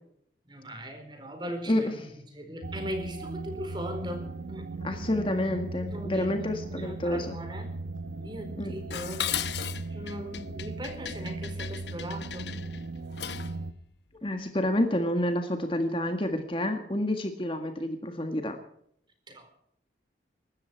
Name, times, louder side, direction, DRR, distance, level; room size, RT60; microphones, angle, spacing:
voice 1, 0.5-5.1 5.9-7.7 8.0-9.3 9.9-12.6 19.3-19.6, equal, 25° right, 5 dB, 4.5 m, -39 dB
sound 1, 2.6-13.7, right 3 dB, 85° right, 1.0 m, -38 dB
voice 2, 4.8-7.4 8.6-8.7 14.2-18.6, left 1 dB, 30° left, 5 dB, 1.7 m, -29 dB
Dishes pots and pans, 8.9-13.6, left 9 dB, 70° left, 0.9 m, -36 dB
24.0 x 13.5 x 4.6 m, 0.71 s
head